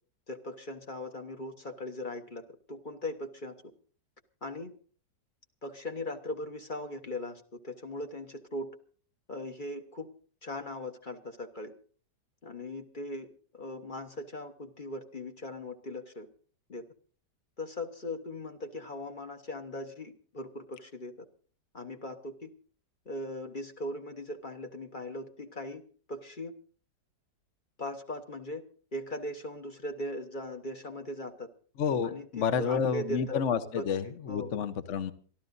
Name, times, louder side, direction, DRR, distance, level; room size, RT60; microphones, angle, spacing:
voice 1, 0.3-3.5 4.4-4.7 5.6-8.7 9.3-10.1 10.4-11.7 12.4-13.3 13.5-16.3 16.7-16.8 17.6-21.2 21.7-22.5 23.0-25.8 26.1-26.5 27.8-28.6 28.9-31.5 32.0-33.4 33.7-34.5, left 1 dB, 30° left, 6 dB, 1.1 m, -39 dB
voice 2, 31.8-35.1, left 7 dB, 50° left, 11 dB, 1.1 m, -30 dB
27.0 x 13.0 x 2.6 m, 0.43 s
omnidirectional pair, 2.0 m